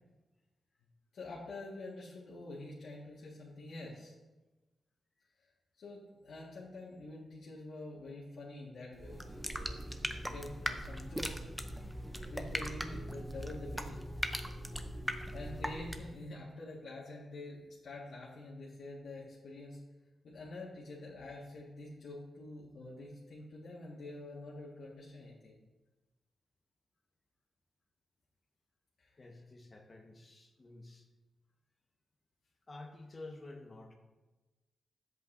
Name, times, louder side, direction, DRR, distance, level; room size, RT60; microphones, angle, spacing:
voice 1, 1.1-4.1 5.8-9.8 10.3-11.5 12.3-14.1 15.3-19.8 20.2-25.6 29.0-29.5, left 2 dB, 70° left, -6 dB, 1.5 m, -47 dB
sound 1, 8.9-16.2, equal, ahead, 0.5 m, -40 dB
voice 2, 29.2-31.0 32.7-33.9, left 2 dB, 30° left, 2 dB, 1.1 m, -50 dB
12.5 x 7.9 x 2.6 m, 1.2 s
wide cardioid pair, 135°, 0 cm